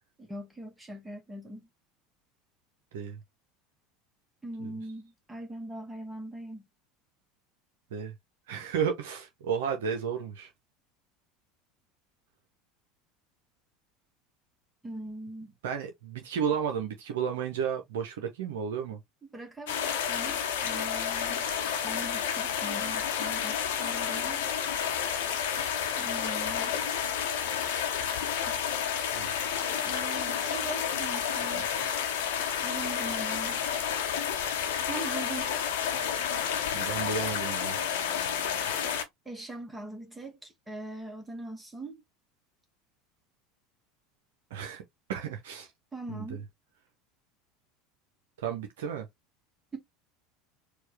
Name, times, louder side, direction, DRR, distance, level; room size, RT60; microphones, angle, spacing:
voice 1, 0.2-1.7 4.4-6.7 14.8-15.5 19.2-21.6 21.8-24.5 25.9-26.9 28.5-28.6 29.6-31.6 32.6-33.6 34.9-35.5 38.5-38.8 39.2-42.0 45.9-46.4, right 2 dB, 10° right, 1.2 m, -41 dB
voice 2, 8.5-10.5 15.6-19.0 29.1-29.3 31.5-31.6 36.7-37.8 44.5-44.8 45.1-45.7 46.1-46.4 48.4-49.1, right 7 dB, 65° right, 0.7 m, -33 dB
sound 1, 19.7-39.0, left 8 dB, 65° left, 0.9 m, -30 dB
4.5 x 2.4 x 3.3 m
figure-of-eight pair, 75°, 0 cm